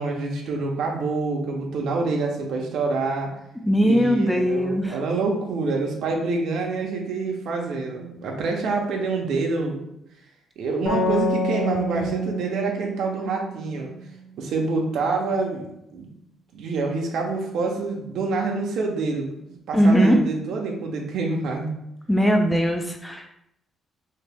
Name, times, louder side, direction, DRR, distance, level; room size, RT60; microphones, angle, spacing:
voice 1, 0.0-3.3 3.8-9.8 10.6-13.9 14.4-15.7 15.9-16.1 16.5-21.7, right 3 dB, 70° right, 1 dB, 0.6 m, -26 dB
voice 2, 3.7-4.9 19.7-20.2 22.1-23.3, equal, 5° left, 3 dB, 0.3 m, -19 dB
sound 1, 10.8-14.4, equal, 90° left, 1.5 m, -28 dB
2.9 x 2.8 x 3.4 m, 0.79 s
cardioid pair, 150°, 0 cm